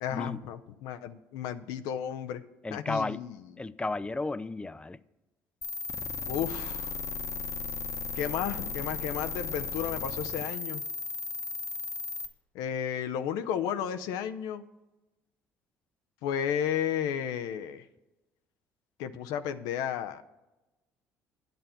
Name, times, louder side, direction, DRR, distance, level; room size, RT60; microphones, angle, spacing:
voice 1, 0.0-2.4 2.7-3.4 6.3-7.0 8.2-10.8 12.5-14.6 16.2-17.8 19.0-20.2, left 9 dB, 80° left, 0.5 m, -33 dB
voice 2, 2.6-3.2 3.6-5.0, left 3 dB, 15° left, 0.4 m, -33 dB
sound 1, 5.6-12.3, left 4 dB, 50° left, 0.9 m, -35 dB
9.2 x 7.7 x 5.6 m
supercardioid pair, 65°, 7 cm